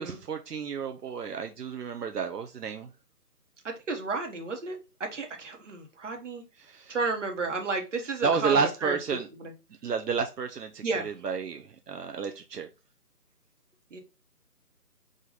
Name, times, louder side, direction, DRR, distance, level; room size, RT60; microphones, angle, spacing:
voice 1, 0.0-2.9 6.6-7.0 8.0-9.3 9.8-12.7, right 5 dB, 80° right, 0.6 m, -31 dB
voice 2, 3.6-6.4 6.9-9.0 9.4-9.5 10.8-11.1 13.9-14.0, right 4 dB, 50° right, 1.2 m, -32 dB
4.9 x 2.6 x 3.8 m
figure-of-eight pair, 155°, 47 cm